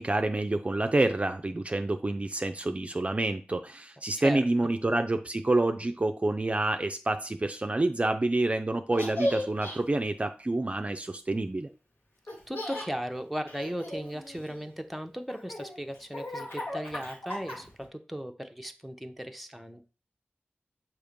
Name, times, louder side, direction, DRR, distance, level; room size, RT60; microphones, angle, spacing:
voice 1, 0.0-11.7, right 2 dB, 30° right, 7 dB, 0.4 m, -28 dB
voice 2, 4.2-4.5 12.5-19.8, equal, ahead, 5 dB, 0.7 m, -37 dB
Laughter, 8.9-9.8 12.3-12.9 13.5-14.7 15.3-17.9, left 1 dB, 75° left, 1.8 m, -35 dB
6.6 x 2.9 x 5.1 m, 0.35 s
wide cardioid pair, 75°, 4 cm